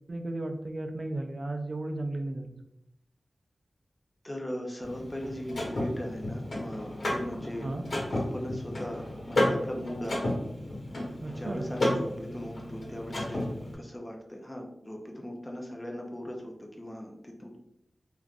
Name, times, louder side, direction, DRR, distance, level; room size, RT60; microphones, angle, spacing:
voice 1, 0.0-2.6 7.6-7.8 11.2-11.6, right 2 dB, 50° right, 5 dB, 0.4 m, -34 dB
voice 2, 4.2-7.7 8.1-10.4 11.3-17.6, equal, 20° left, 1 dB, 0.6 m, -38 dB
Car / Mechanisms, 4.8-13.7, left 1 dB, 80° left, 1.0 m, -32 dB
3.2 x 2.4 x 2.4 m, 0.81 s
wide cardioid pair, 75°, 0 cm